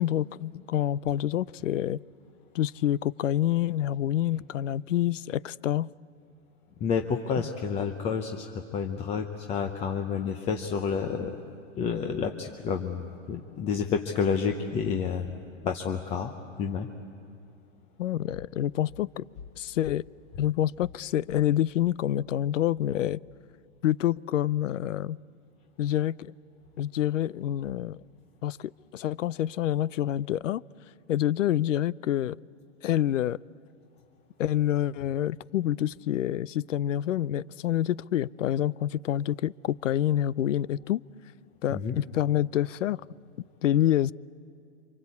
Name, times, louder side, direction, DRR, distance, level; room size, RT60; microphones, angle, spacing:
voice 1, 0.0-2.0 2.5-5.9 7.4-7.5 18.0-19.2 19.6-20.0 20.4-23.2 23.8-25.2 25.8-26.3 26.8-28.0 28.4-30.6 31.1-32.4 32.8-33.4 34.4-41.0 41.6-43.0 43.6-44.1, left 12 dB, 75° left, 23 dB, 0.6 m, -27 dB
voice 2, 6.8-11.4 11.8-15.3 15.6-16.3 16.6-16.9 41.7-41.9, left 6 dB, 15° left, 5 dB, 0.7 m, -29 dB
28.0 x 25.5 x 8.4 m, 2.4 s
hypercardioid pair, 145°, 38 cm